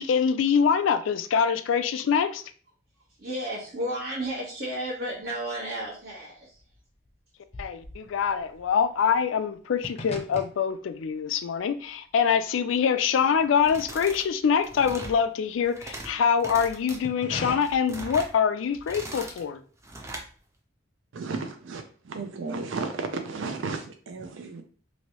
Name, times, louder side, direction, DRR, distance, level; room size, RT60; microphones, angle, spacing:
voice 1, 0.0-2.4 7.6-19.6, left 7 dB, 85° left, 11 dB, 0.4 m, -24 dB
voice 2, 3.2-6.6, right 1 dB, 60° right, -7 dB, 1.1 m, -33 dB
sound 1, 4.7-5.5 5.8-14.1 14.4-16.2 16.8-17.6, left 2 dB, 35° left, 0.5 m, -42 dB
sound 2, 13.6-14.3 14.6-15.2 15.6-16.1 16.4-17.0 17.4-18.3 18.7-19.4 19.8-20.3, right 1 dB, 15° right, 0.5 m, -40 dB
voice 3, 21.1-24.6, right 4 dB, 80° right, 6 dB, 0.4 m, -34 dB
3.0 x 2.6 x 2.9 m, 0.43 s
head